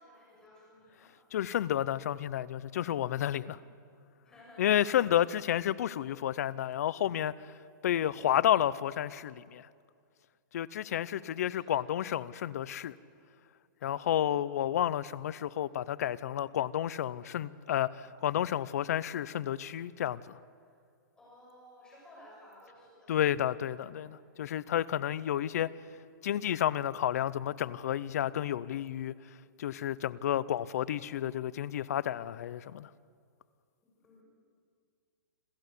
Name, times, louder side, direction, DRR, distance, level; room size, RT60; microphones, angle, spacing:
voice 1, 0.0-1.1 2.8-3.5 4.2-5.4 5.7-6.0 7.8-8.6 10.8-11.8 13.8-14.4 20.6-20.8 21.2-23.2 23.8-24.1 33.8-34.2, left 1 dB, 5° left, 7.3 m, -57 dB
voice 2, 1.3-3.6 4.6-7.5 7.8-9.7 10.5-12.9 13.8-20.4 23.1-25.7 26.2-29.1 29.6-32.9, left 11 dB, 50° left, 0.7 m, -31 dB
27.5 x 14.0 x 8.3 m
hypercardioid pair, 175°, 11 cm